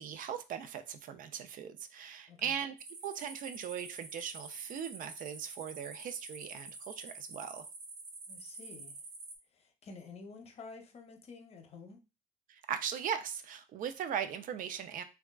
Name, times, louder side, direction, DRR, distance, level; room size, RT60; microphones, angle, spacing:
voice 1, 0.0-2.7 3.0-7.6 12.5-15.0, right 8 dB, 55° right, 0.4 m, -39 dB
sound 1, 2.8-9.4, right 3 dB, 75° right, 0.8 m, -48 dB
voice 2, 8.3-9.0 9.5-12.0, left 4 dB, 35° left, 0.6 m, -50 dB
3.4 x 2.3 x 2.2 m
cardioid pair, 110°, 17 cm